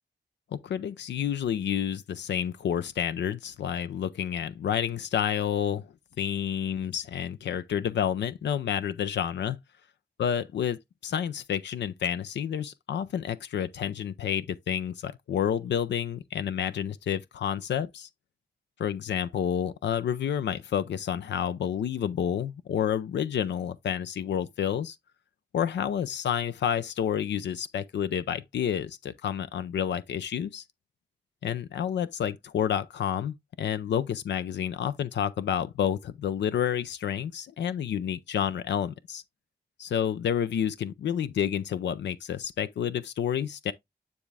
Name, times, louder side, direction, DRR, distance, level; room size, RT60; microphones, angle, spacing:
voice 1, 0.5-5.9 6.2-9.6 10.2-18.1 18.8-25.0 25.5-30.6 31.4-39.2 39.8-43.7, left 9 dB, 90° left, 0.5 m, -29 dB
9.5 x 3.5 x 3.3 m
cardioid pair, 50°, 18 cm